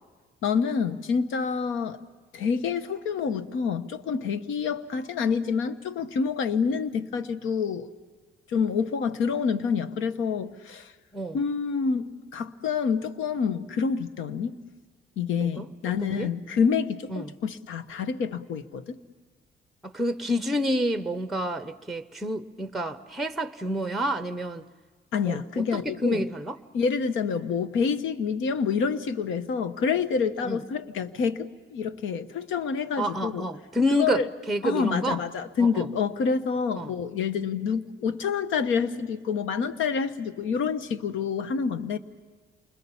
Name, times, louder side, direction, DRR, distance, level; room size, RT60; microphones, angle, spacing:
voice 1, 0.4-2.0 2.3-7.9 8.5-10.9 11.3-14.6 15.2-19.0 25.1-26.3 26.7-33.5 33.9-34.3 34.6-42.0, left 6 dB, 85° left, 1.1 m, -27 dB
voice 2, 16.0-16.3 17.1-17.3 19.8-24.6 25.3-26.6 30.4-30.6 33.0-34.2 34.5-35.2 35.6-35.9 36.8-36.9, equal, ahead, 0.9 m, -29 dB
28.0 x 21.5 x 7.1 m
cardioid pair, 90°, 20 cm